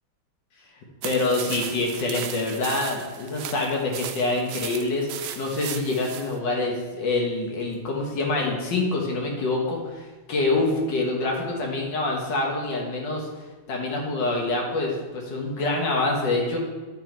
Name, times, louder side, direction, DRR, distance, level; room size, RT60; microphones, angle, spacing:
voice 1, 1.0-5.1 5.4-13.3 13.7-16.6, left 2 dB, 60° left, 0 dB, 2.0 m, -26 dB
sound 1, 1.0-6.4, right 9 dB, 85° right, 1.4 m, -36 dB
9.3 x 4.7 x 4.5 m, 1.3 s
omnidirectional pair, 2.3 m